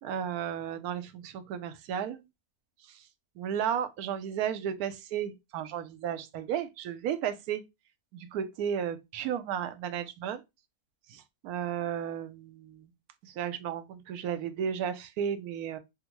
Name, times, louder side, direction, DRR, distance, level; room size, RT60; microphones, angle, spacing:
voice 1, 0.0-2.3 2.9-3.0 3.4-7.6 8.1-10.4 11.1-12.9 13.2-15.8, right 9 dB, 80° right, 1.0 m, -34 dB
3.6 x 2.1 x 2.9 m
omnidirectional pair, 1.6 m